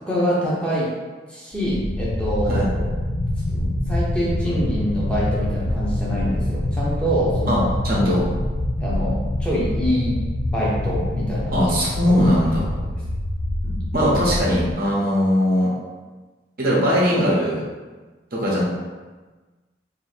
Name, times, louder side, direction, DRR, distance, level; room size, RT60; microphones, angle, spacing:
voice 1, 0.0-0.9 1.3-2.9 3.5-7.6 8.8-10.2 10.5-11.5 13.6-13.8, equal, 5° left, -8 dB, 0.7 m, -25 dB
sound 1, 1.5-14.7, left 1 dB, 60° left, 0.3 m, -25 dB
voice 2, 7.8-8.2 11.5-12.7 13.9-15.7 16.6-17.6 18.3-18.6, equal, 55° right, -5 dB, 0.9 m, -20 dB
2.7 x 2.7 x 4.1 m, 1.3 s
head